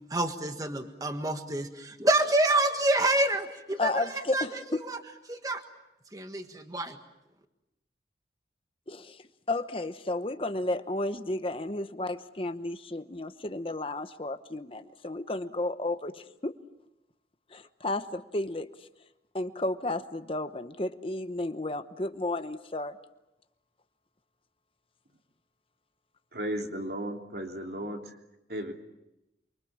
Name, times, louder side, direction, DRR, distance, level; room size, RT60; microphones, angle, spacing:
voice 1, 0.1-5.0 5.3-5.6 6.1-7.0, right 2 dB, 20° right, 6 dB, 1.5 m, -28 dB
voice 2, 3.8-4.8 8.9-9.2 9.5-16.5 17.5-18.7 19.3-23.0, left 2 dB, 30° left, 10 dB, 0.9 m, -32 dB
voice 3, 26.3-28.0 28.5-28.7, right 1 dB, 60° right, 2 dB, 3.1 m, -34 dB
29.0 x 24.0 x 7.4 m, 0.92 s
head